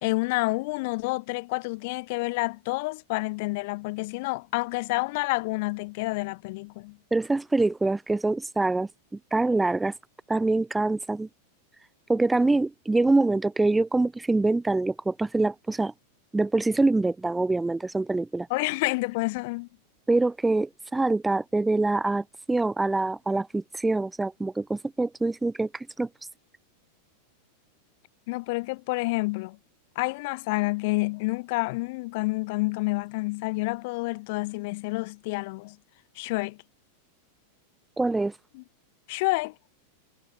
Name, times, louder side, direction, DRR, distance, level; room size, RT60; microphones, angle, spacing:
voice 1, 0.0-7.0 18.5-19.7 28.3-29.6 29.9-35.8 36.2-36.6 38.5-38.6 39.1-39.5, left 25 dB, 50° left, 1.2 m, -29 dB
voice 2, 7.1-8.9 9.3-9.9 10.3-11.3 12.1-15.9 16.3-18.5 20.1-26.1 38.0-38.3, right 2 dB, 10° right, 1.4 m, -25 dB
figure-of-eight pair, 90°, 0 cm